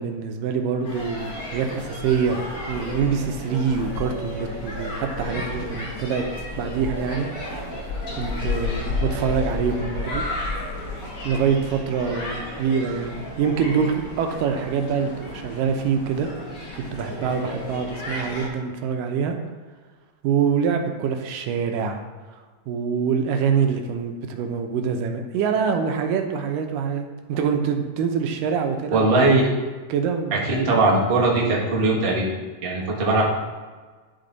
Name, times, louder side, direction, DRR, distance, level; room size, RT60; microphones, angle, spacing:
voice 1, 0.0-2.4 2.7-6.2 6.6-7.3 8.2-10.3 11.2-16.3 16.7-19.4 20.2-22.0 22.7-29.3 29.9-30.8 31.4-31.5, right 6 dB, 80° right, 5 dB, 2.3 m, -25 dB
sound 1, 0.8-18.5, left 2 dB, 50° left, 0.9 m, -32 dB
voice 2, 28.9-29.5 30.3-32.3 32.6-33.2, right 2 dB, 65° right, -4 dB, 0.5 m, -20 dB
11.5 x 4.2 x 3.9 m, 1.4 s
omnidirectional pair, 3.9 m